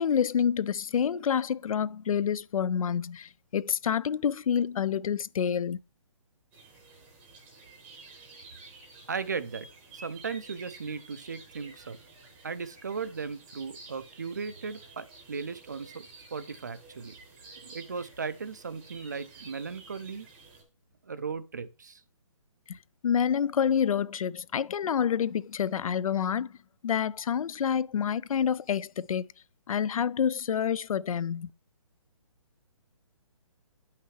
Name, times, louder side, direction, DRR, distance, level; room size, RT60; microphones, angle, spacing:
voice 1, 0.0-5.8 23.0-26.5 26.8-29.3 29.7-31.5, left 8 dB, 90° left, 0.4 m, -28 dB
sound 1, 6.5-20.6, right 3 dB, 10° right, 0.7 m, -51 dB
voice 2, 9.1-9.7 9.9-12.0 12.4-17.1 17.6-20.3 21.1-22.0, right 5 dB, 35° right, 0.3 m, -37 dB
8.5 x 5.7 x 3.1 m
hypercardioid pair, 175°, 17 cm